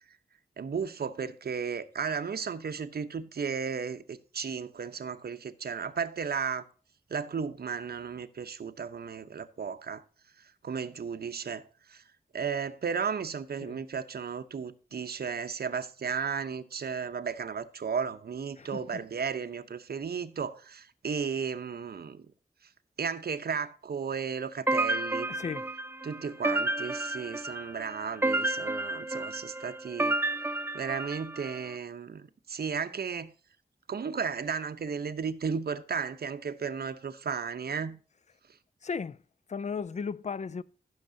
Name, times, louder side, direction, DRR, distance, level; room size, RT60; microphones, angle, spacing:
voice 1, 0.6-6.6 7.1-10.0 10.4-11.6 11.9-12.0 12.3-22.3 23.0-25.3 26.0-30.2 30.7-33.3 33.9-38.0, right 6 dB, 80° right, 0.8 m, -34 dB
voice 2, 18.6-19.0 25.3-25.7 38.8-39.2 39.5-40.6, left 5 dB, 45° left, 0.4 m, -35 dB
sound 1, 24.7-31.6, right 2 dB, 15° right, 0.4 m, -31 dB
15.0 x 6.5 x 2.7 m
wide cardioid pair, 100°, 16 cm